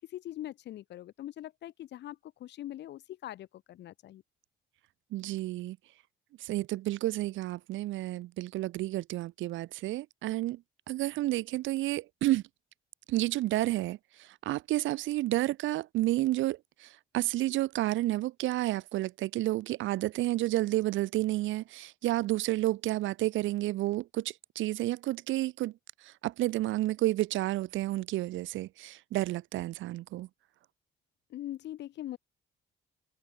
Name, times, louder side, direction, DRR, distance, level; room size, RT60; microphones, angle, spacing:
voice 1, 0.1-4.2 31.3-32.2, left 13 dB, 60° left, 0.5 m, -42 dB
voice 2, 5.1-5.8 6.4-12.4 13.1-25.7 26.0-30.3, right 16 dB, 75° right, 0.5 m, -31 dB
cardioid pair, 90°, 20 cm